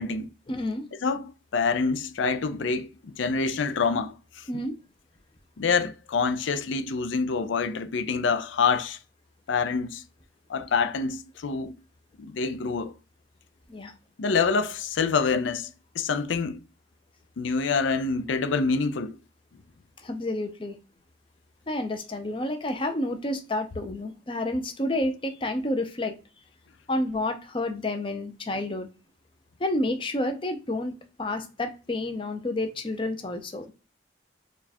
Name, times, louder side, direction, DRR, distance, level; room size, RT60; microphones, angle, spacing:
voice 1, 0.5-0.8 4.5-4.7 13.7-13.9 20.0-20.8 21.7-26.2 26.9-28.9 29.6-33.7, left 1 dB, 25° left, 0.6 m, -30 dB
voice 2, 1.0-4.4 5.6-9.0 9.5-10.0 10.5-11.7 12.2-13.0 14.2-16.6 17.4-19.2, left 5 dB, 75° left, 0.5 m, -26 dB
4.5 x 2.3 x 4.2 m
head